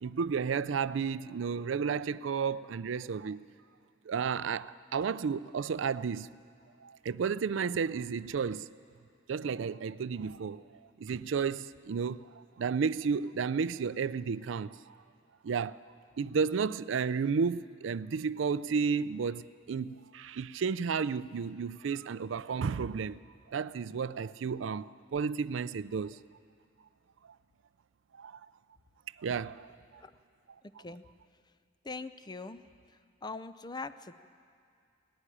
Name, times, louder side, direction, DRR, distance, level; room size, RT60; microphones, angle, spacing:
voice 1, 0.0-3.5 4.1-6.3 6.8-8.7 9.3-10.6 11.0-15.0 15.4-15.8 16.2-23.2 23.5-26.2 28.1-28.4 29.2-30.0, right 6 dB, 75° right, 0.4 m, -32 dB
voice 2, 30.6-31.0 31.8-32.6 32.9-34.1, left 3 dB, 20° left, 0.5 m, -42 dB
19.0 x 14.5 x 10.0 m
head